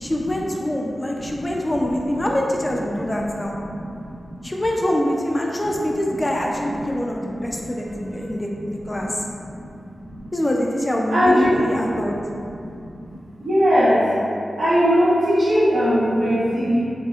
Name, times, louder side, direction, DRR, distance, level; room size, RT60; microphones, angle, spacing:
voice 1, 0.0-3.5 4.4-9.1 10.3-12.2, left 1 dB, 20° left, -1 dB, 0.3 m, -24 dB
voice 2, 3.5-4.3 5.7-5.8 7.1-7.7 8.1-8.2 8.9-9.7 10.0-10.2 11.1-11.6 11.9-12.0 12.4-14.0 14.5-16.8, equal, 85° right, -14 dB, 1.0 m, -21 dB
4.1 x 2.0 x 2.3 m, 2.5 s
wide cardioid pair, 135°, 0 cm